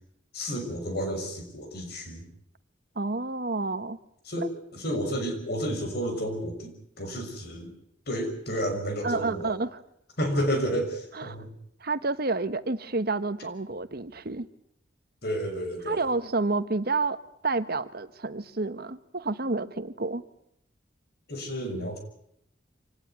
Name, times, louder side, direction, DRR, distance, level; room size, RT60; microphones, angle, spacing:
voice 1, 0.3-2.3 4.3-7.7 8.1-9.5 10.2-11.5 15.2-16.1 21.3-22.0, equal, 55° left, 5 dB, 6.6 m, -31 dB
voice 2, 2.9-4.0 9.0-9.8 11.1-11.4 11.8-14.5 15.9-17.2 17.4-20.2, right 3 dB, 55° right, 13 dB, 1.2 m, -29 dB
26.0 x 18.5 x 9.6 m, 0.74 s
head